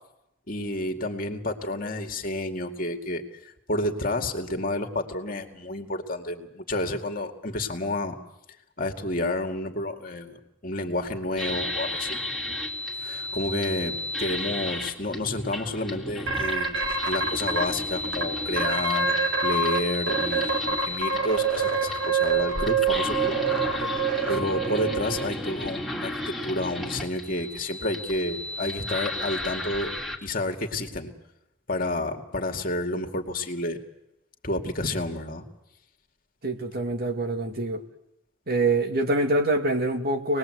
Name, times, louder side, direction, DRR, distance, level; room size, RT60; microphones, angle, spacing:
voice 1, 0.5-8.2 8.8-10.4 10.6-12.2 13.0-23.4 24.3-29.9 30.2-31.1 31.7-33.8 34.4-35.4, left 1 dB, 45° left, 4 dB, 2.3 m, -30 dB
sound 1, 11.4-30.2, left 1 dB, ahead, 2.5 m, -33 dB
sound 2, 16.3-17.6 18.1-18.2 18.6-19.8 20.1-25.3, right 5 dB, 65° right, 3.9 m, -25 dB
voice 2, 36.4-37.8 38.5-40.4, right 2 dB, 50° right, 5 dB, 2.3 m, -25 dB
26.5 x 20.0 x 7.9 m, 0.86 s
head